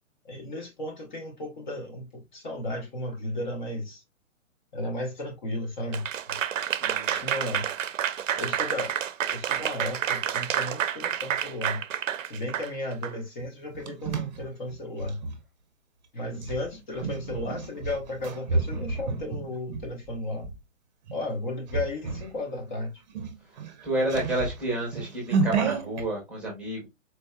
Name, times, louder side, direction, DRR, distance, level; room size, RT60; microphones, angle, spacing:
voice 1, 0.2-4.0 4.7-6.4 7.1-7.7 8.4-8.9 9.3-11.8 12.2-15.2 16.1-20.5 21.1-23.0, left 1 dB, 35° left, 0.9 m, -34 dB
Applause / Crowd, 5.9-13.1, right 9 dB, 70° right, 0.6 m, -29 dB
voice 2, 6.8-7.2 23.8-26.9, right 1 dB, 5° right, 0.9 m, -30 dB
sound 1, 13.4-15.4 16.3-20.6 21.1-21.3 21.7-22.4 22.7-22.8 23.1-26.1, right 4 dB, 35° right, 0.7 m, -31 dB
4.3 x 2.6 x 2.2 m
hypercardioid pair, 150°, 39 cm